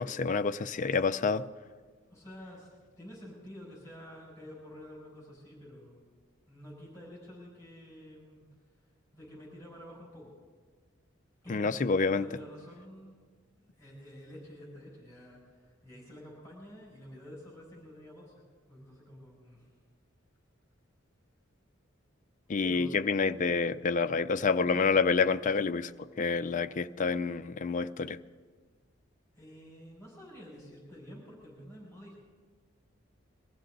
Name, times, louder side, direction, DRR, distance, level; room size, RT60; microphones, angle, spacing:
voice 1, 0.0-1.4 11.5-12.3 22.5-28.2, left 4 dB, 40° left, 11 dB, 0.4 m, -28 dB
voice 2, 2.1-2.7 3.0-6.0 6.5-8.4 9.1-10.3 11.4-13.2 13.8-18.3 18.7-19.6 22.6-23.0 29.3-32.2, equal, 15° left, -5 dB, 5.9 m, -49 dB
23.0 x 14.5 x 3.9 m, 1.5 s
head